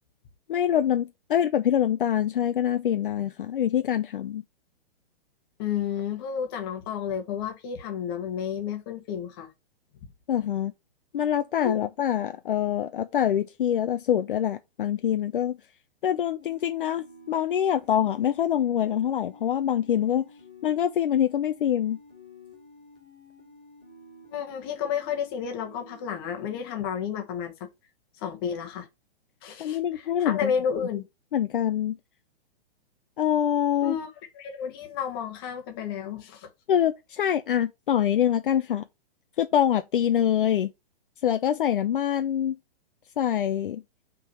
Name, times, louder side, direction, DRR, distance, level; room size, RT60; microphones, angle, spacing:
voice 1, 0.5-4.4 10.3-10.7 11.1-15.6 16.0-20.3 20.6-22.0 29.6-30.5 31.3-32.0 33.2-34.0 36.7-38.8 39.4-40.7 41.2-42.6 43.2-43.8, left 10 dB, 55° left, 0.6 m, -25 dB
voice 2, 5.6-9.5 11.6-11.8 24.3-27.7 28.2-28.9 29.4-31.1 33.8-36.5, left 8 dB, 25° left, 1.2 m, -31 dB
sound 1, 16.4-26.8, left 2 dB, 10° right, 0.3 m, -52 dB
5.8 x 3.8 x 6.1 m
hypercardioid pair, 170°, 31 cm